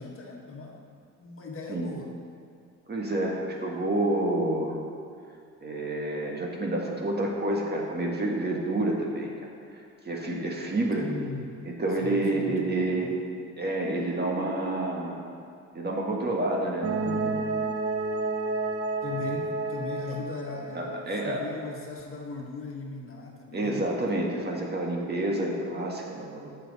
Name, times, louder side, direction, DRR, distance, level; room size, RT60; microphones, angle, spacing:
voice 1, 0.0-2.1 11.0-11.5 12.0-13.1 19.0-23.8, left 3 dB, 45° left, -1 dB, 1.6 m, -38 dB
voice 2, 2.9-4.8 5.6-9.3 9.7-11.1 11.8-13.1 13.6-15.2 15.7-17.5 20.7-21.4 23.5-26.5, right 1 dB, 35° right, -1 dB, 1.7 m, -29 dB
sound 1, 16.8-21.5, right 3 dB, 50° right, 0.8 m, -31 dB
14.5 x 6.0 x 4.1 m, 2.4 s
cardioid pair, 90°, 30 cm